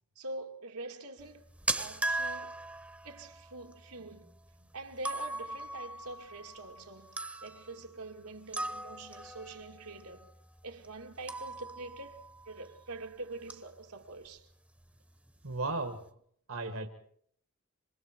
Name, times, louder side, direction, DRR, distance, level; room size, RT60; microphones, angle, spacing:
voice 1, 0.2-1.5 1.8-2.6 3.0-4.4 4.7-10.3 10.6-14.5, right 2 dB, 90° right, 2.2 m, -45 dB
sound 1, 1.2-13.1 13.4-13.8 14.1-14.3 14.8-14.9 15.2-15.7, right 2 dB, 5° right, 0.9 m, -40 dB
voice 2, 15.4-16.0 16.5-16.9, right 3 dB, 75° right, 1.7 m, -35 dB
27.5 x 25.5 x 4.6 m
head